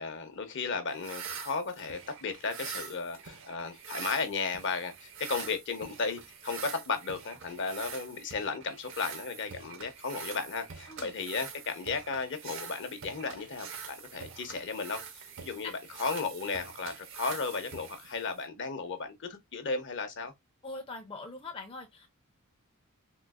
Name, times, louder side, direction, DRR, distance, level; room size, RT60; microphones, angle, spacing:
voice 1, 0.0-15.7 16.0-20.3, left 4 dB, 60° left, 0.7 m, -35 dB
sound 1, 0.9-18.5, right 6 dB, 60° right, 0.7 m, -45 dB
voice 2, 20.6-22.1, left 3 dB, 25° left, 0.5 m, -42 dB
3.8 x 2.4 x 2.3 m
head